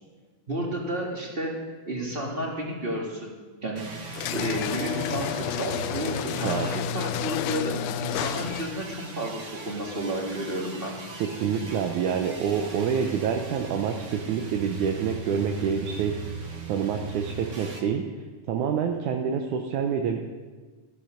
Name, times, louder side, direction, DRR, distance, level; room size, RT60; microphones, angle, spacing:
voice 1, 0.5-3.3 3.6-11.0, right 1 dB, 20° right, -1 dB, 1.7 m, -32 dB
sound 1, 3.7-7.5 8.1-17.8, right 4 dB, 45° right, 0.9 m, -40 dB
sound 2, 4.1-8.9, left 10 dB, 85° left, 2.2 m, -31 dB
voice 2, 11.2-16.2 16.7-18.1 18.5-20.3, right 7 dB, 75° right, 3 dB, 2.2 m, -27 dB
14.5 x 12.0 x 5.1 m, 1.4 s
omnidirectional pair, 3.6 m